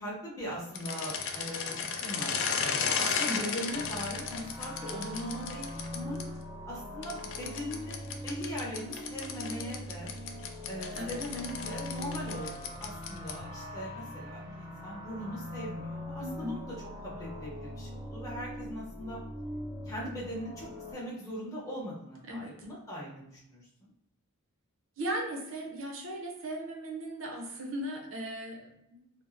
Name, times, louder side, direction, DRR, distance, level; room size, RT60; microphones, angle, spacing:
voice 1, 0.0-6.2 6.6-10.1 10.7-16.7 17.0-19.2 19.8-23.9, equal, 15° left, -6 dB, 0.9 m, -40 dB
sound 1, 0.7-6.2 7.0-13.5, left 6 dB, 55° left, 0.4 m, -35 dB
sound 2, 3.7-20.9, left 1 dB, 20° right, 0.9 m, -42 dB
voice 2, 16.2-16.6 22.3-22.5 25.0-29.0, right 1 dB, 60° right, 1 dB, 0.7 m, -37 dB
2.7 x 2.2 x 3.4 m, 0.80 s
head